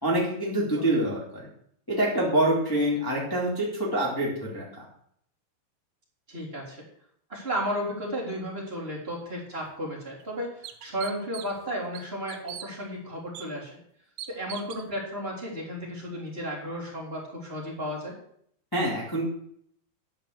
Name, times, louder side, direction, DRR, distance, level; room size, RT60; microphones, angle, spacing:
voice 1, 0.0-1.5 1.9-4.8 18.7-19.3, right 1 dB, 10° left, -5 dB, 1.0 m, -26 dB
voice 2, 6.3-6.8 7.3-13.7 14.3-18.1, equal, 15° right, -5 dB, 2.7 m, -34 dB
sound 1, 9.6-9.7 10.2-10.3 10.6-11.6 11.9-12.7 13.3-13.5 14.2-14.8, right 11 dB, 85° right, 3.5 m, -40 dB
11.5 x 5.1 x 8.0 m, 0.66 s
omnidirectional pair, 5.7 m